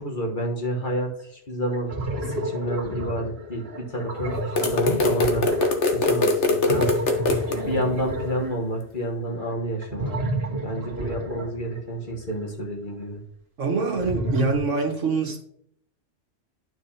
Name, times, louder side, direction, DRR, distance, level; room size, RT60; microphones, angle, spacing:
voice 1, 0.0-3.6 3.9-5.5 5.8-6.9 7.7-10.1 10.6-13.2, right 1 dB, 40° left, 1 dB, 1.4 m, -29 dB
sound 1, 1.2-1.3 1.7-12.3 13.6-14.6, right 1 dB, 55° right, 1.8 m, -31 dB
sound 2, 4.6-7.6, left 3 dB, 70° left, 1.3 m, -22 dB
voice 2, 13.6-15.4, right 4 dB, 75° right, 2 dB, 1.8 m, -25 dB
11.5 x 4.7 x 2.8 m, 0.66 s
omnidirectional pair, 1.3 m